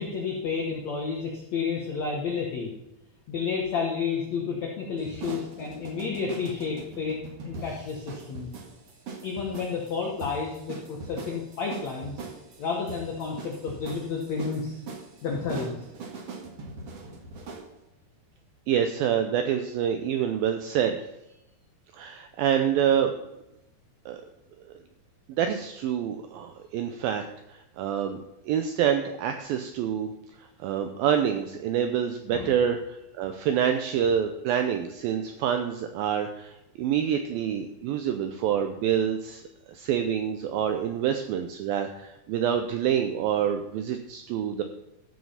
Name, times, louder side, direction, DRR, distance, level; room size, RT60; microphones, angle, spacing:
voice 1, 0.0-2.7 3.3-7.2 7.4-8.5 9.2-12.1 12.6-14.8 15.2-15.8 32.3-32.5, left 5 dB, 65° left, 0 dB, 1.7 m, -31 dB
sound 1, 5.0-17.7, right 3 dB, 50° right, 1.9 m, -42 dB
voice 2, 18.7-21.0 22.0-23.1 24.1-24.2 24.7-24.8 25.3-27.2 27.5-30.1 30.4-39.4 39.7-44.6, right 9 dB, 85° right, 7 dB, 2.1 m, -27 dB
14.5 x 6.3 x 5.6 m, 0.89 s
omnidirectional pair, 4.9 m